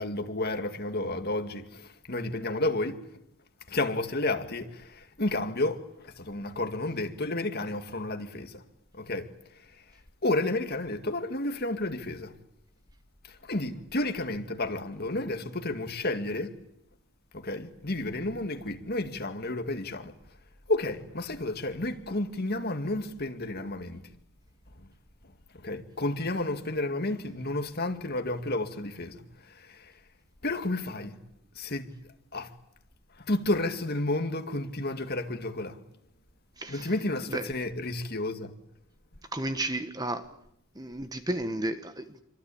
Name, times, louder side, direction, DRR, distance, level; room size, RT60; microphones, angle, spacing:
voice 1, 0.0-3.0 3.7-8.6 8.9-9.8 10.2-12.3 13.3-16.6 17.3-20.1 20.7-24.0 24.8-24.9 25.5-29.9 30.4-31.2 31.6-31.9 32.3-32.5 33.2-35.8 36.7-38.5, left 2 dB, 45° left, 2.1 m, -31 dB
voice 2, 36.6-36.9 37.3-37.5 39.3-40.3 40.7-42.2, right 1 dB, 15° right, 1.3 m, -33 dB
27.0 x 25.5 x 8.6 m
head